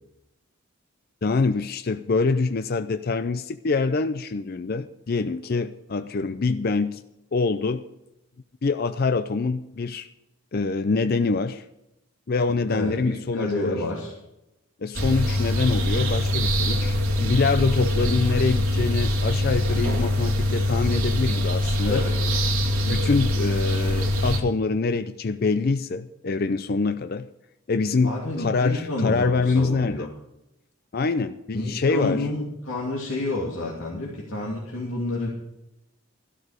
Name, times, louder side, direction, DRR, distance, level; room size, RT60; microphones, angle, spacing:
voice 1, 1.2-7.0 7.3-7.8 8.6-10.1 10.5-11.6 12.3-13.8 14.8-22.1 22.9-27.3 27.7-30.1 30.9-32.3, left 4 dB, 45° left, 10 dB, 0.4 m, -25 dB
voice 2, 12.7-14.1 21.8-22.1 28.0-30.1 31.5-35.3, left 2 dB, 70° left, -4 dB, 2.7 m, -29 dB
sound 1, 14.9-24.4, left 1 dB, 75° right, 2.6 m, -23 dB
13.5 x 12.5 x 5.0 m, 0.89 s
head